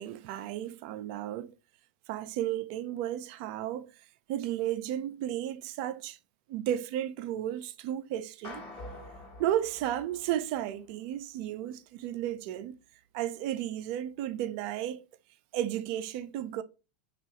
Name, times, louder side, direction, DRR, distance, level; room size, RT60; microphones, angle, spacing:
voice 1, 0.0-1.5 2.1-3.9 4.3-6.2 6.5-8.6 9.4-12.8 13.1-15.0 15.5-16.6, right 11 dB, 50° right, 0.3 m, -33 dB
sound 1, 8.4-10.9, left 2 dB, 45° left, 0.9 m, -46 dB
2.6 x 2.3 x 2.9 m
hypercardioid pair, 95°, 6 cm